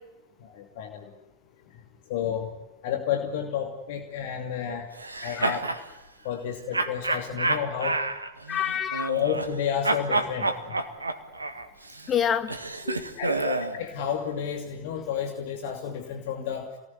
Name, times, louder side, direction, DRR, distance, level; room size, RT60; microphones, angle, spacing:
voice 1, 0.4-1.1 2.1-2.5 2.8-4.9 5.2-5.6 6.2-8.0 9.1-10.5 13.2-16.7, left 8 dB, 50° left, 5 dB, 2.6 m, -31 dB
sound 1, 5.0-5.8 6.7-9.6 9.8-13.8, right 2 dB, 80° right, 1.8 m, -29 dB
voice 2, 8.5-9.1 12.1-12.5 12.9-13.5, left 8 dB, 25° left, 10 dB, 1.8 m, -28 dB
28.0 x 19.5 x 9.6 m, 1.0 s
figure-of-eight pair, 90°, 0 cm